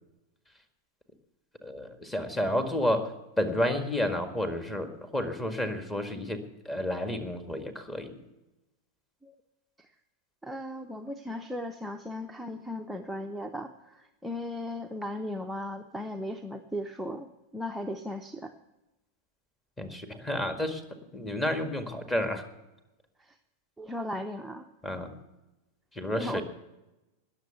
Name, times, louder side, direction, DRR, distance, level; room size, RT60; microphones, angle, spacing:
voice 1, 1.6-3.1 3.4-8.2 19.8-20.8 21.1-22.4 24.8-25.1 25.9-26.4, left 1 dB, 15° left, 7 dB, 1.8 m, -30 dB
voice 2, 10.4-17.3 17.5-18.5 23.2-23.4 23.8-24.7 26.1-26.4, left 1 dB, 5° right, 3 dB, 0.7 m, -37 dB
20.0 x 7.2 x 6.7 m, 1.0 s
figure-of-eight pair, 90°, 0 cm